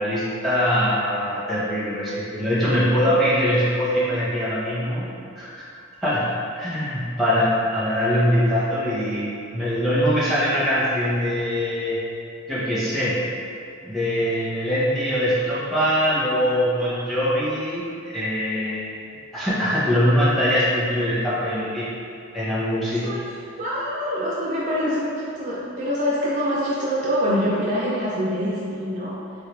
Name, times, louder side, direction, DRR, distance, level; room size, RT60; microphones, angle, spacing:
voice 1, 0.0-5.1 5.4-5.5 6.0-12.0 12.5-13.2 13.8-18.9 19.3-21.9 22.3-23.2, equal, ahead, -10 dB, 0.7 m, -22 dB
voice 2, 22.8-23.2 23.6-29.2, equal, 35° right, -7 dB, 0.3 m, -25 dB
3.6 x 2.4 x 3.0 m, 2.6 s
head